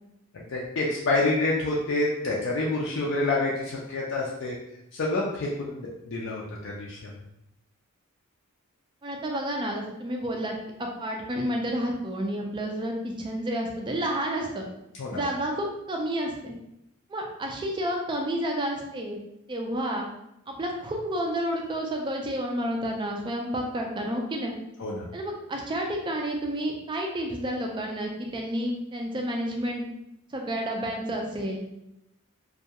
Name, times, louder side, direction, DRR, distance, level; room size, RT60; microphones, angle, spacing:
voice 1, 0.3-4.5 4.9-7.0 15.0-15.2 24.8-25.0, left 2 dB, 55° left, -4 dB, 0.4 m, -28 dB
voice 2, 9.0-14.6 15.1-16.5 17.1-19.2 19.5-20.1 20.5-24.5 25.1-29.9 30.3-31.7, right 1 dB, 20° right, 1 dB, 0.3 m, -30 dB
2.3 x 2.2 x 2.8 m, 0.83 s
head